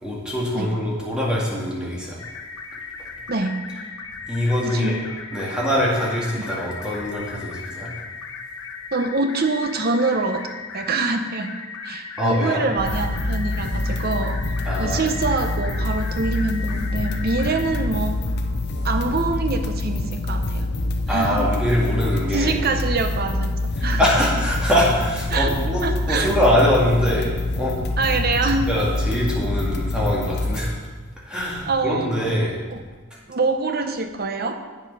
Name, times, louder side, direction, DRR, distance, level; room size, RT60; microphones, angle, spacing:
voice 1, 0.0-2.2 4.3-4.9 5.3-7.9 12.2-12.6 14.6-15.2 21.1-22.6 23.8-25.8 26.1-27.3 27.5-27.8 28.5-30.7 31.2-32.6, equal, 5° right, -5 dB, 2.2 m, -23 dB
sound 1, 2.2-17.8, left 5 dB, 75° left, 1.0 m, -37 dB
voice 2, 4.7-5.0 6.3-6.5 8.9-10.4 10.7-11.5 11.8-18.2 18.8-20.7 21.1-21.5 22.3-23.5 23.8-24.0 25.3-25.6 25.8-26.4 28.0-28.7 31.7-32.3 32.7-32.8 33.3-34.6, right 3 dB, 45° right, 6 dB, 0.8 m, -25 dB
sound 2, 12.8-30.6, left 2 dB, 50° left, 0.7 m, -26 dB
8.5 x 7.6 x 5.4 m, 1.4 s
head